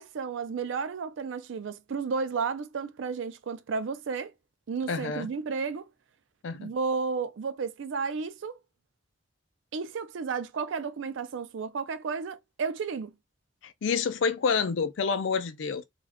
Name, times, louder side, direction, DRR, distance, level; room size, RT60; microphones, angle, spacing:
voice 1, 0.0-4.3 4.7-5.9 6.6-8.6 9.7-13.1, right 5 dB, 80° right, 0.4 m, -32 dB
voice 2, 4.9-5.3 6.4-6.7 13.6-15.8, left 5 dB, 75° left, 0.4 m, -28 dB
2.3 x 2.3 x 3.4 m
head